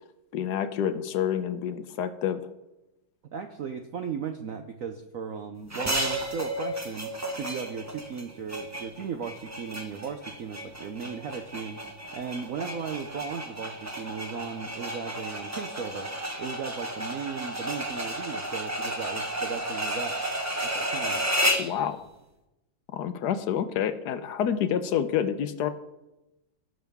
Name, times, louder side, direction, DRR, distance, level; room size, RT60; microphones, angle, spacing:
voice 1, 0.3-2.4 21.6-22.0 22.9-25.7, left 9 dB, 70° left, 11 dB, 1.1 m, -28 dB
voice 2, 3.2-7.1 7.4-11.8 12.1-16.1 16.4-20.2 20.6-21.2, right 6 dB, 75° right, 6 dB, 0.7 m, -36 dB
sound 1, 5.7-21.8, equal, 20° right, 0.4 m, -32 dB
17.5 x 6.4 x 3.5 m, 0.96 s
omnidirectional pair, 2.2 m